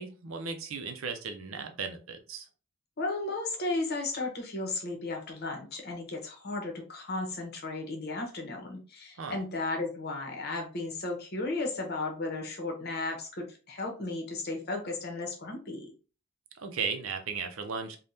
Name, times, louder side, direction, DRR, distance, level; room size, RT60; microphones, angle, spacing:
voice 1, 0.0-2.5 9.2-9.4 16.6-18.0, right 5 dB, 70° right, 5 dB, 0.5 m, -36 dB
voice 2, 3.0-15.9, left 2 dB, 50° left, 2 dB, 0.9 m, -34 dB
3.4 x 2.2 x 2.7 m, 0.35 s
head